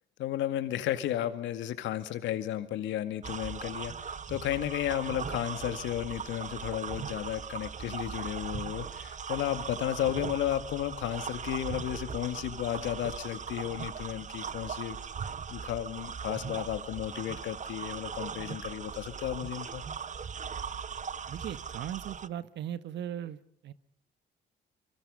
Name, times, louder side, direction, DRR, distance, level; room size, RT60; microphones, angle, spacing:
voice 1, 0.2-15.0 15.5-19.8, left 12 dB, 80° left, 10 dB, 2.1 m, -33 dB
sound 1, 3.2-22.3, right 6 dB, 40° right, 1.0 m, -39 dB
voice 2, 21.3-23.7, right 10 dB, 70° right, 14 dB, 1.5 m, -38 dB
27.5 x 24.0 x 5.5 m, 0.64 s
supercardioid pair, 65°, 19 cm